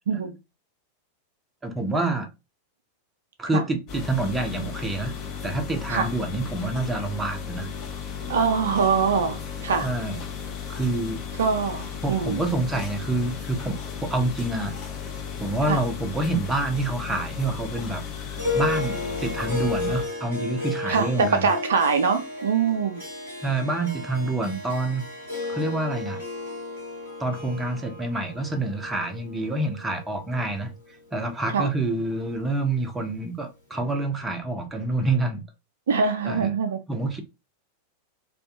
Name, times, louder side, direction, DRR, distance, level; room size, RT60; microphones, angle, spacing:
voice 1, 1.6-2.3 3.4-5.1 5.4-7.7 9.8-10.2 10.7-11.2 12.0-13.8 14.0-14.7 15.4-18.0 18.3-21.5 23.4-25.0 25.5-26.2 27.2-30.7 31.1-35.4 36.2-36.5 36.9-37.2, right 2 dB, 10° right, 0.6 m, -27 dB
sound 1, 3.9-20.1, left 7 dB, 35° left, 0.7 m, -35 dB
voice 2, 8.3-9.9 11.4-12.4 15.7-15.8 20.9-23.0 31.5-31.7 35.9-36.8, right 5 dB, 65° right, 0.4 m, -23 dB
Harp, 18.3-30.9, left 2 dB, 80° left, 1.5 m, -33 dB
2.4 x 2.3 x 2.6 m
figure-of-eight pair, 90°, 0 cm